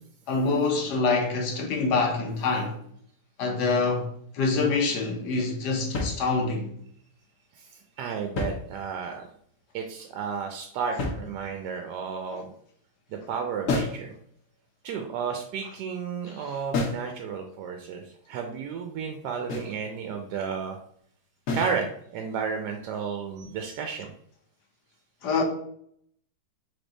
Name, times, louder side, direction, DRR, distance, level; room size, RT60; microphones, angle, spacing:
voice 1, 0.3-2.8 3.4-4.1 4.3-6.7 12.3-12.4 16.4-16.5 25.2-25.4, left 4 dB, 80° left, 1.5 m, -25 dB
sound 1, 5.9-6.7 8.2-9.2 11.0-11.8 13.7-14.1 16.7-17.1 19.5-19.8 21.5-21.8, left 3 dB, 55° left, 1.1 m, -31 dB
voice 2, 8.0-9.2 9.7-12.5 13.1-14.1 14.8-20.8 21.5-24.1, right 6 dB, 85° right, 1.2 m, -32 dB
3.8 x 3.5 x 3.9 m
omnidirectional pair, 1.8 m